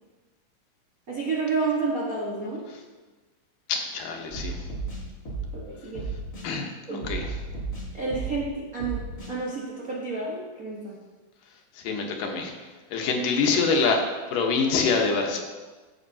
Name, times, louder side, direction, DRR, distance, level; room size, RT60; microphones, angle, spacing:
voice 1, 1.1-2.6 5.5-6.0 6.9-7.1 7.9-9.0 9.3-10.9, right 4 dB, 80° right, -5 dB, 0.7 m, -30 dB
voice 2, 3.7-4.7 6.4-7.4 11.7-12.5 12.9-15.4, left 4 dB, 85° left, 2 dB, 2.7 m, -25 dB
sound 1, 4.3-5.6 5.9-6.5 7.0-8.5 8.8-9.3, right 3 dB, 30° left, 1.7 m, -34 dB
13.0 x 7.8 x 2.8 m, 1.3 s
omnidirectional pair, 3.7 m